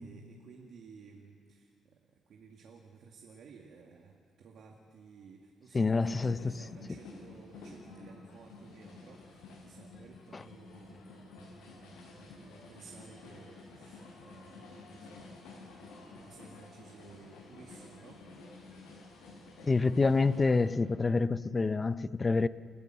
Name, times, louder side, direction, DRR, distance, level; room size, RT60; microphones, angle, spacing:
voice 1, 0.0-1.7 2.3-11.0 11.3-15.2 15.8-18.2, right 5 dB, 70° right, 2.1 m, -55 dB
voice 2, 5.7-6.5 10.3-10.4 19.7-22.5, left 3 dB, 30° left, 0.6 m, -27 dB
sound 1, 5.9-20.7, left 3 dB, 85° left, 7.1 m, -51 dB
29.0 x 13.5 x 7.7 m
cardioid pair, 90°, 0 cm